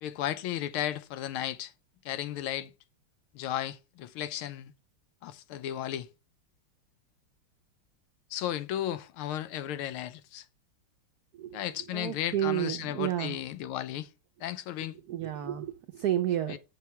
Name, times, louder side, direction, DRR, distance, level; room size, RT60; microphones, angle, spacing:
voice 1, 0.0-1.7 2.0-2.7 3.3-4.7 5.2-6.1 8.3-10.5 11.5-14.1 14.4-15.0 16.5-16.6, left 12 dB, 90° left, 1.5 m, -34 dB
voice 2, 11.9-13.4 15.1-16.6, right 12 dB, 70° right, 0.9 m, -31 dB
6.6 x 4.9 x 5.7 m
omnidirectional pair, 2.3 m